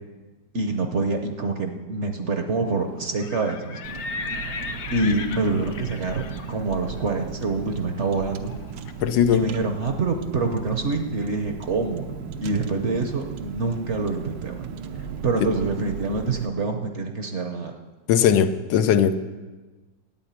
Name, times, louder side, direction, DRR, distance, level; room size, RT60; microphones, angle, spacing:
voice 1, 0.5-3.8 4.9-8.5 9.3-12.0 12.4-14.7 15.2-17.7, right 3 dB, 50° right, 5 dB, 1.0 m, -26 dB
Livestock farm animals working animals, 3.0-8.9, left 4 dB, 55° left, 0.8 m, -37 dB
Car, 3.8-16.5, right 6 dB, 80° right, 1.4 m, -36 dB
voice 2, 9.0-9.4 18.1-19.2, left 9 dB, 85° left, 10 dB, 1.4 m, -19 dB
9.9 x 8.7 x 8.8 m, 1.3 s
omnidirectional pair, 1.9 m